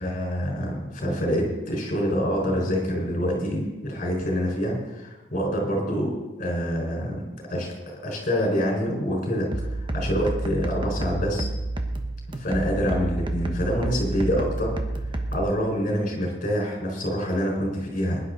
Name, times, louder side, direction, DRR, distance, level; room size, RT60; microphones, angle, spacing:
voice 1, 0.0-6.1 6.4-7.7 8.0-11.5 12.4-14.7 15.3-18.2, equal, 45° left, -1 dB, 5.3 m, -26 dB
sound 1, 9.5-15.5, right 1 dB, 25° right, 1.2 m, -29 dB
21.0 x 11.0 x 4.1 m, 1.1 s
head